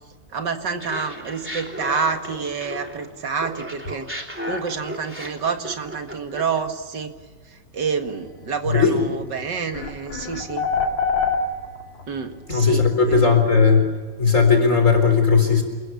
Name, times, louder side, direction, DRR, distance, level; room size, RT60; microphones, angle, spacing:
voice 1, 0.3-4.1 4.4-7.1 7.7-10.7 12.1-13.3, right 5 dB, 65° right, 6 dB, 2.4 m, -28 dB
Laughter, 0.8-3.1 3.4-6.6, equal, 5° right, 3.3 m, -34 dB
voice 2, 8.7-9.0 12.5-13.9 14.2-15.6, left 5 dB, 40° left, 5 dB, 4.3 m, -17 dB
sound 1, 9.2-9.3 9.7-12.0, left 5 dB, 70° left, 4.1 m, -24 dB
29.0 x 21.0 x 7.1 m, 1.4 s
omnidirectional pair, 2.1 m